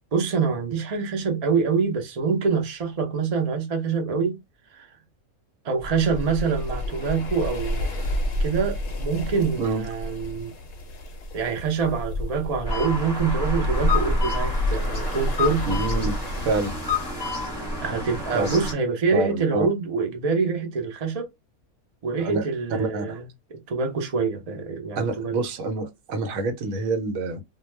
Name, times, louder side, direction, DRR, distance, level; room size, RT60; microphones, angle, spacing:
voice 1, 0.1-4.4 4.7-4.9 5.6-10.5 11.3-15.7 17.8-21.3 22.0-25.4, right 5 dB, 55° right, 0.4 m, -25 dB
sound 1, 5.8-16.7, left 1 dB, 65° left, 0.7 m, -30 dB
sound 2, 12.6-18.7, left 2 dB, 20° left, 0.8 m, -28 dB
voice 2, 15.7-16.2 16.5-16.8 18.3-18.5 19.1-19.7 22.2-22.4 22.7-23.2 25.0-27.4, right 3 dB, 75° right, 1.0 m, -27 dB
2.2 x 2.2 x 3.1 m
omnidirectional pair, 1.5 m